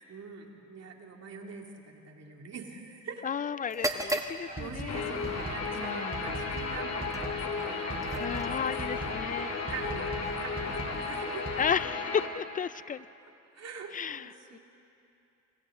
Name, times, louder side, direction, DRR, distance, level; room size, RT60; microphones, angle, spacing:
voice 1, 0.1-3.3 3.8-4.2 4.5-9.1 9.7-11.5 12.7-12.8 13.5-14.6, right 5 dB, 55° right, 1 dB, 2.6 m, -44 dB
voice 2, 3.2-5.2 5.8-6.3 8.2-9.5 11.6-13.1 13.9-14.6, left 7 dB, 30° left, 19 dB, 0.4 m, -33 dB
sound 1, 3.6-11.5, right 1 dB, 10° right, 1.4 m, -41 dB
sound 2, 4.5-11.6, right 3 dB, 30° right, 4.4 m, -40 dB
Guitar, 4.9-12.3, left 4 dB, 60° left, 2.6 m, -34 dB
27.5 x 26.5 x 3.8 m, 2.7 s
cardioid pair, 90°, 30 cm